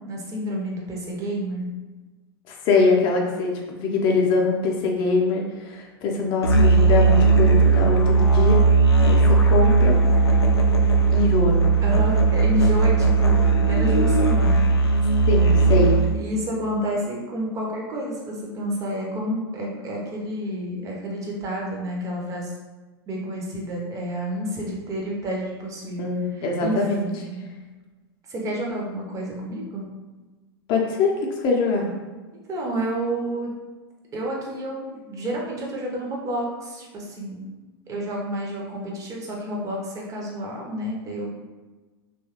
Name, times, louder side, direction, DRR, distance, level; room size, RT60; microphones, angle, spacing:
voice 1, 0.0-1.7 11.8-14.6 16.1-22.5 23.1-26.0 26.3-26.8 27.1-27.5 28.3-29.9 32.5-33.5 34.1-37.5 37.9-41.3, equal, 25° right, -2 dB, 0.7 m, -29 dB
voice 2, 2.5-8.7 9.0-10.0 11.1-11.5 15.3-15.9 26.0-27.0 30.7-31.8, left 3 dB, 35° left, 0 dB, 0.6 m, -23 dB
Musical instrument, 6.4-16.2, right 4 dB, 75° left, 0.4 m, -17 dB
3.0 x 2.3 x 2.9 m, 1.3 s
figure-of-eight pair, 90°, 13 cm